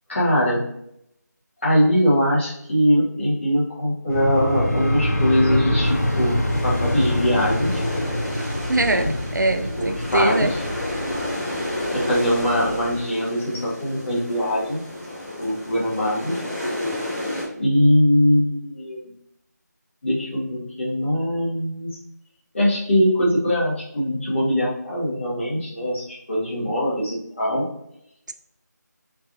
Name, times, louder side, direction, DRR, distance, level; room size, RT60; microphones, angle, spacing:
voice 1, 0.1-0.6 1.6-7.8 8.8-9.1 9.8-10.6 11.9-14.8 15.4-16.4 17.5-19.0 20.0-22.0 22.5-27.7, equal, 40° left, -6 dB, 1.7 m, -22 dB
sound 1, 4.1-12.9, left 1 dB, 60° left, 0.9 m, -26 dB
sound 2, 5.8-17.4, left 1 dB, 5° left, 0.9 m, -31 dB
voice 2, 8.7-9.1 9.3-10.5, right 2 dB, 75° right, 8 dB, 0.5 m, -22 dB
4.7 x 3.7 x 2.6 m, 0.76 s
figure-of-eight pair, 170°, 10 cm